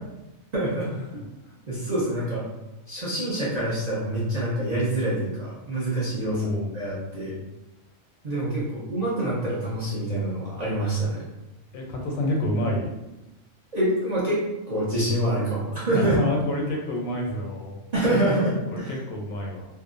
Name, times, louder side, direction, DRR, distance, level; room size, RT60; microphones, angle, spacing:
voice 1, 0.5-0.9 1.7-2.4 2.9-7.3 8.2-11.2 13.7-14.4 14.7-16.2 17.9-18.9, right 1 dB, 45° right, -9 dB, 0.5 m, -26 dB
voice 2, 6.3-6.7 11.7-12.9 15.9-17.8 18.7-19.7, left 1 dB, 90° left, 0 dB, 1.0 m, -28 dB
2.6 x 2.1 x 2.4 m, 0.99 s
omnidirectional pair, 1.4 m